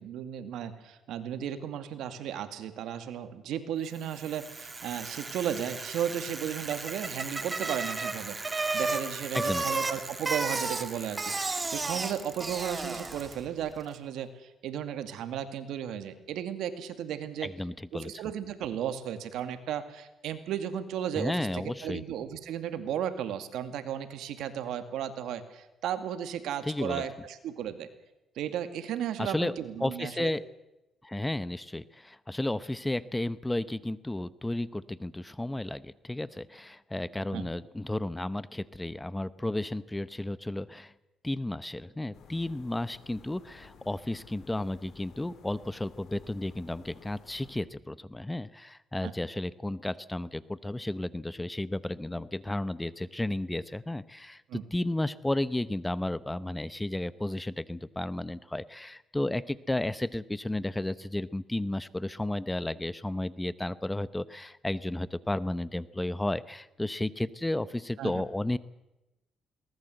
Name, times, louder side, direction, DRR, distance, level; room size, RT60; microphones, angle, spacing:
voice 1, 0.0-17.5 17.9-27.9 28.4-30.3 37.3-37.5 49.0-49.1 54.5-54.6 68.0-68.2, right 9 dB, 85° right, 10 dB, 2.2 m, -35 dB
Bicycle, 4.0-13.5, right 3 dB, 25° right, 2.4 m, -34 dB
voice 2, 9.3-9.7 17.4-18.1 21.2-22.0 26.6-27.0 29.2-29.5 29.8-30.4 31.0-40.9 41.2-68.6, left 1 dB, 10° left, 17 dB, 0.8 m, -33 dB
sound 1, 42.1-47.5, left 5 dB, 70° left, 4.8 m, -55 dB
22.0 x 19.0 x 7.9 m, 0.95 s
cardioid pair, 90°, 0 cm